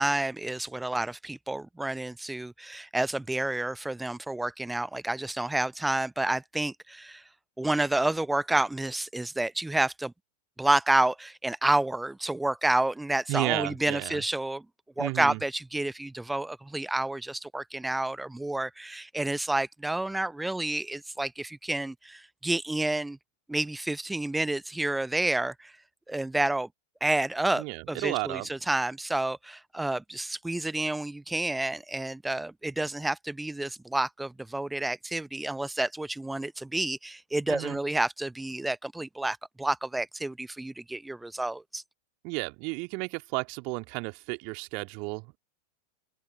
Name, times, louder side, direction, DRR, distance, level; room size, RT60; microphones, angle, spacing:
voice 1, 0.0-7.2 7.6-10.1 10.6-14.6 15.0-23.2 23.5-25.7 26.1-26.7 27.0-41.8, right 2 dB, 5° right, 0.7 m, -29 dB
voice 2, 13.3-14.2 15.0-15.4 27.6-28.5 37.5-37.8 42.2-45.4, right 31 dB, 45° right, 2.1 m, -33 dB
open air
figure-of-eight pair, 90°, 0 cm